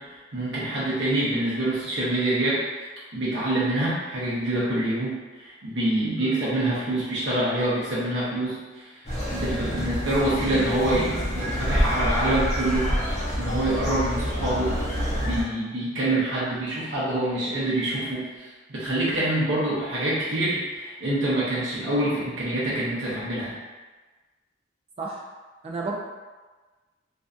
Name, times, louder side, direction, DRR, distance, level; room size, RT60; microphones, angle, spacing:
voice 1, 0.0-2.6 3.1-9.0 9.3-13.1 13.3-14.9 15.1-23.5, right 1 dB, 75° right, -8 dB, 0.6 m, -26 dB
sound 1, 9.1-15.4, equal, 40° left, 0.6 m, -27 dB
voice 2, 25.6-25.9, right 3 dB, 30° right, -2 dB, 0.3 m, -33 dB
2.5 x 2.1 x 2.4 m, 1.3 s
head